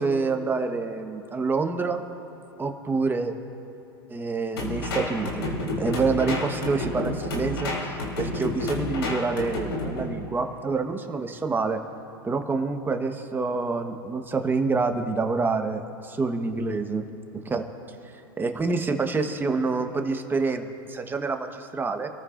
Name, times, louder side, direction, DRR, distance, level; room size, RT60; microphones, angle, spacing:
voice 1, 0.0-2.0 2.6-3.4 4.1-5.5 5.8-11.8 12.2-17.0 17.4-17.6 18.4-22.1, right 4 dB, 15° right, 5 dB, 1.1 m, -27 dB
sound 1, 4.6-10.1, left 2 dB, 90° left, 3.3 m, -30 dB
27.5 x 14.0 x 2.5 m, 3.0 s
hypercardioid pair, 110°, 13 cm